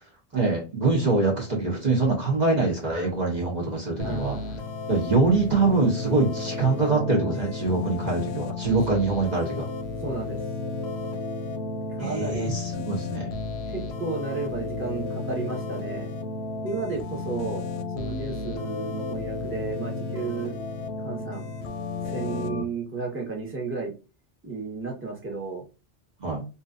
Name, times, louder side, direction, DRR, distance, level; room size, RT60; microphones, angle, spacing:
voice 1, 0.3-4.4 4.9-9.6 12.0-13.3 26.2-26.4, right 3 dB, 40° right, -2 dB, 1.1 m, -24 dB
sound 1, 4.0-22.6, left 3 dB, 70° left, 0.8 m, -33 dB
voice 2, 4.0-4.5 8.9-9.0 10.0-10.4 12.0-12.4 13.7-16.1 16.6-17.7 17.9-20.5 21.0-21.5 22.1-23.9 24.4-25.6, right 4 dB, 10° right, -1 dB, 1.0 m, -33 dB
3.0 x 2.7 x 2.4 m, 0.31 s
omnidirectional pair, 1.2 m